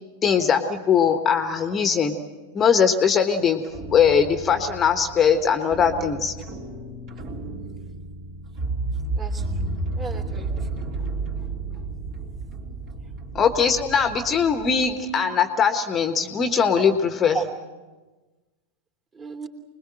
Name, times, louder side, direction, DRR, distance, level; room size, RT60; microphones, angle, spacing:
voice 1, 0.2-2.2 2.5-3.6 3.9-6.3 13.3-17.4, left 7 dB, 25° left, 8 dB, 1.3 m, -20 dB
sound 1, 3.6-14.9, right 3 dB, 40° right, 3.8 m, -32 dB
voice 2, 9.2-10.8 17.3-17.4 19.1-19.5, right 5 dB, 25° right, 4 dB, 3.3 m, -35 dB
25.5 x 21.0 x 7.9 m, 1.2 s
figure-of-eight pair, 90°, 0 cm